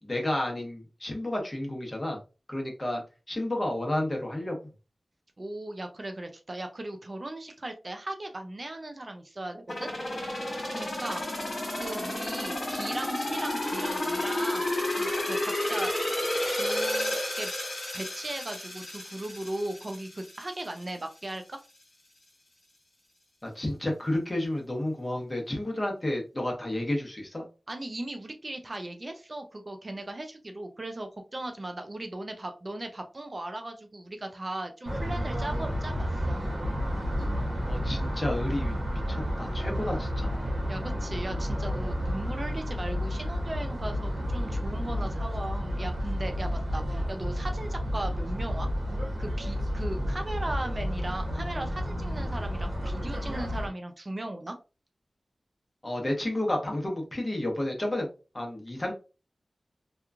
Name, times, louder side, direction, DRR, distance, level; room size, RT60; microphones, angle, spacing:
voice 1, 0.0-2.2 2.5-3.0 3.3-4.6 23.4-27.4 37.7-40.5 55.8-58.1 58.3-58.9, left 1 dB, 30° left, 1 dB, 0.9 m, -31 dB
voice 2, 5.4-9.9 10.7-11.3 11.7-15.9 16.5-17.5 17.9-21.6 27.7-36.5 40.7-48.7 49.2-54.6, right 1 dB, 40° right, 5 dB, 0.4 m, -37 dB
sound 1, 9.7-20.4 20.8-20.9, left 1 dB, 70° left, 1.3 m, -31 dB
sound 2, 34.8-53.7, equal, 75° right, 1.0 m, -31 dB
2.9 x 2.3 x 2.3 m, 0.32 s
wide cardioid pair, 80°, 0 cm